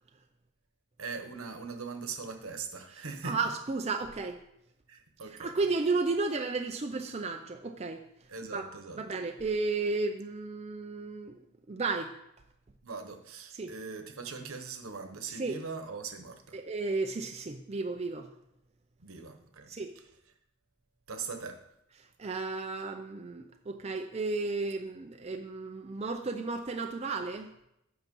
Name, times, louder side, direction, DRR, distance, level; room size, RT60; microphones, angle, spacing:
voice 1, 1.0-3.4 4.9-5.5 8.3-9.0 12.8-16.6 19.0-20.0 21.1-21.6, right 5 dB, 75° right, 6 dB, 1.1 m, -41 dB
voice 2, 3.2-4.4 5.4-8.0 8.5-8.7 9.0-11.4 11.7-12.1 13.5-13.7 15.3-15.6 16.5-18.3 19.7-19.9 22.2-27.5, right 3 dB, 30° right, 4 dB, 0.5 m, -33 dB
8.2 x 5.8 x 5.4 m, 0.82 s
head